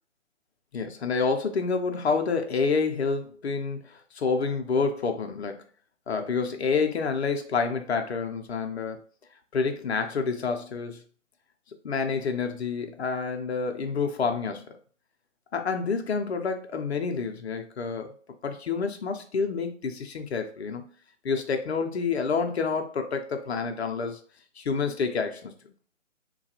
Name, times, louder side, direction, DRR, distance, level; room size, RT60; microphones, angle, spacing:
voice 1, 0.7-5.6 6.1-9.0 9.5-11.0 11.8-14.7 15.5-18.1 18.4-20.9 21.2-24.2 24.6-25.5, left 5 dB, 55° left, 5 dB, 0.5 m, -28 dB
3.2 x 2.2 x 2.8 m, 0.43 s
figure-of-eight pair, 155°, 38 cm